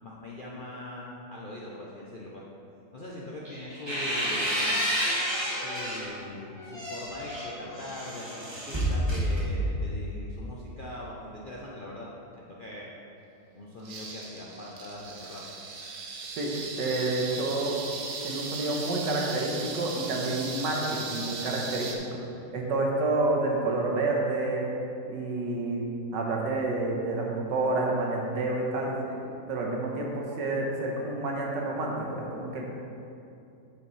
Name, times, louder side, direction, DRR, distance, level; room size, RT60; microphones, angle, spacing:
voice 1, 0.0-2.4 2.9-4.7 5.5-12.1 12.4-12.9 13.5-15.4, left 1 dB, 55° left, -5 dB, 0.5 m, -41 dB
sound 1, 3.4-6.1 6.6-9.9, equal, 20° right, 1.0 m, -29 dB
sound 2, 13.8-22.0, right 4 dB, 60° right, 1.2 m, -38 dB
voice 2, 16.4-17.8 18.2-22.1 22.5-24.7 25.1-25.8 26.1-32.7, right 2 dB, 90° right, -1 dB, 1.7 m, -29 dB
8.7 x 6.5 x 3.2 m, 2.7 s
omnidirectional pair, 1.8 m